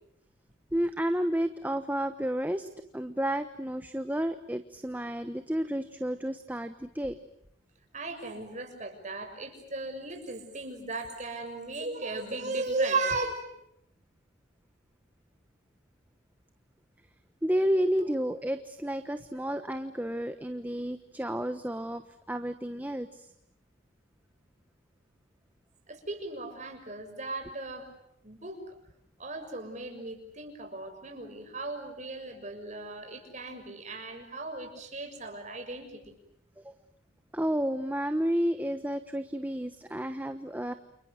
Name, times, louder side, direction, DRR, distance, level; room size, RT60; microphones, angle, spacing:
voice 1, 0.7-2.7 2.9-7.2 17.4-23.3 36.6-36.7 37.3-40.7, equal, 10° right, 8 dB, 1.1 m, -31 dB
voice 2, 7.9-13.4 18.0-18.1 25.9-27.9 28.2-28.6 29.2-36.2, right 3 dB, 40° right, 5 dB, 6.5 m, -36 dB
30.0 x 29.0 x 6.6 m, 0.78 s
head